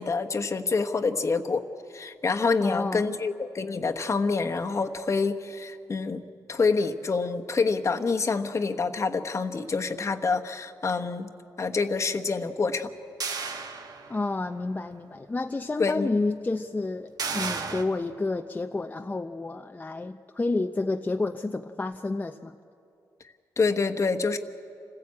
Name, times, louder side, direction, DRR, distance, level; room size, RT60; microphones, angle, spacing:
voice 1, 0.0-1.7 1.9-6.2 6.5-11.3 11.6-12.9 15.8-16.1 23.6-24.4, left 4 dB, 40° left, 6 dB, 1.2 m, -27 dB
voice 2, 2.6-3.2 14.1-22.5, left 3 dB, 20° left, 5 dB, 0.6 m, -30 dB
sound 1, 13.2-14.5 14.9-15.0 17.2-17.8, right 5 dB, 60° right, 1.4 m, -33 dB
27.5 x 15.5 x 8.5 m, 2.6 s
cardioid pair, 85°, 8 cm